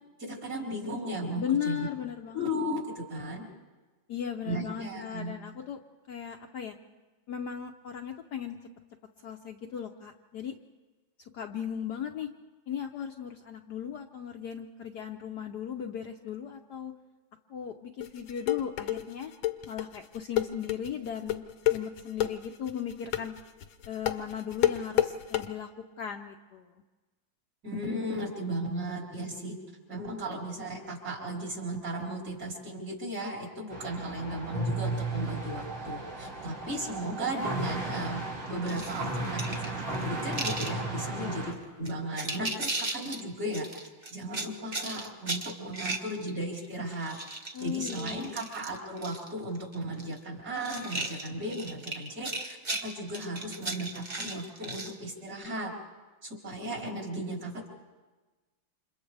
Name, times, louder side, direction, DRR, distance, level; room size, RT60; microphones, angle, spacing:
voice 1, 0.2-1.9 2.3-3.5 4.4-5.3 27.6-29.6 29.9-43.7 44.1-47.2 47.6-55.7 56.2-57.7, right 1 dB, 45° right, -3 dB, 4.6 m, -36 dB
voice 2, 1.4-2.4 4.1-5.8 6.1-6.8 7.3-8.6 9.2-10.5 11.3-12.3 12.7-16.9 17.5-19.3 19.7-21.4 21.7-23.3 23.9-25.7 26.0-26.7 41.2-41.5 47.5-48.5, left 8 dB, 65° left, 3 dB, 1.2 m, -37 dB
sound 1, 18.0-25.5, left 13 dB, 80° left, 1.7 m, -28 dB
sound 2, 33.7-41.5, right 2 dB, 70° right, 4.6 m, -35 dB
sound 3, 38.7-40.7 41.4-41.5 41.9-43.2 43.5-46.7 46.9-49.3 49.6-50.2 50.6-55.0, right 2 dB, 25° right, 1.1 m, -36 dB
29.5 x 27.0 x 3.4 m, 1.2 s
omnidirectional pair, 2.3 m